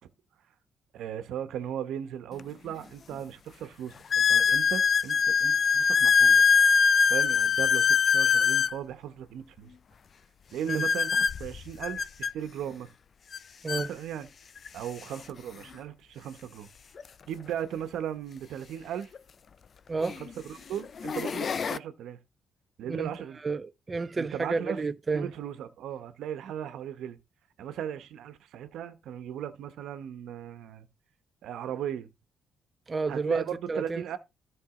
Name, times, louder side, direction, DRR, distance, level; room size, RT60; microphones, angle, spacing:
voice 1, 0.9-6.4 7.0-9.7 10.5-12.9 13.7-14.3 14.7-16.7 17.3-19.1 20.2-22.2 22.8-23.4 24.2-24.8 25.1-27.2 27.6-30.9 31.4-32.1 33.1-34.2, right 9 dB, 80° right, 1.1 m, -37 dB
sound 1, 2.4-2.5 3.1-3.2 4.1-8.8 10.7-12.3 13.3-13.4 13.7-13.9 14.7-14.8 17.0-17.1 19.1-19.2 20.0-20.3 20.8-21.8, left 6 dB, 45° left, 0.4 m, -23 dB
voice 2, 23.4-25.3 32.9-34.2, right 4 dB, 30° right, 0.4 m, -31 dB
13.0 x 5.3 x 3.8 m
cardioid pair, 90°, 0 cm